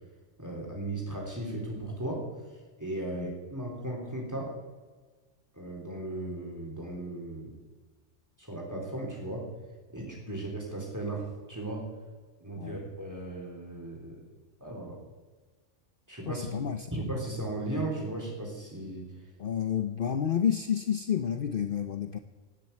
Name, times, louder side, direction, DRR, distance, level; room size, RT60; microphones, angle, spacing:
voice 1, 0.4-2.2 2.5-4.5 5.5-7.5 8.4-9.5 9.9-11.8 12.4-14.3 14.6-15.0 16.1-16.5 16.9-19.1, right 2 dB, 15° right, 0 dB, 3.7 m, -36 dB
voice 2, 16.3-17.1 19.4-22.2, left 8 dB, 50° left, 8 dB, 0.9 m, -30 dB
18.0 x 7.6 x 8.4 m, 1.4 s
omnidirectional pair, 1.2 m